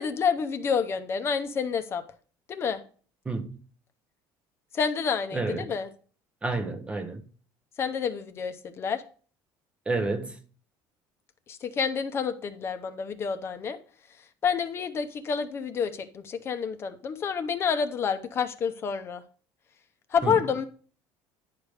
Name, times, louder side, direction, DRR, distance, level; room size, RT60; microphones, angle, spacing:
voice 1, 0.0-2.0 2.5-2.8 4.7-5.9 7.8-9.0 11.5-13.8 14.4-19.2 20.1-20.7, left 6 dB, 30° left, 0.8 m, -28 dB
voice 2, 3.3-3.6 5.3-5.7 6.4-7.2 9.9-10.4 20.2-20.4, right 3 dB, 15° right, 0.8 m, -30 dB
10.5 x 5.0 x 4.8 m
cardioid pair, 160°, 8 cm